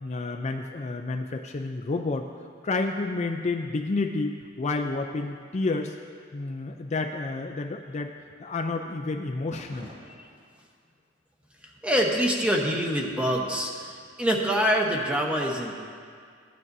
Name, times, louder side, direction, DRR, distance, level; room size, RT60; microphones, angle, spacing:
voice 1, 0.0-2.3 2.6-6.0 6.3-8.1 8.4-9.9, left 3 dB, 35° left, 4 dB, 0.4 m, -30 dB
sound 1, 4.4-4.5 4.9-5.8 6.1-6.2 6.5-6.6 7.6-7.7 8.5-9.1 9.5-11.0 11.4-11.9 12.2-12.3, equal, 25° right, 1.0 m, -49 dB
voice 2, 11.6-15.7, equal, 5° right, -1 dB, 1.0 m, -25 dB
16.0 x 9.9 x 2.7 m, 2.1 s
head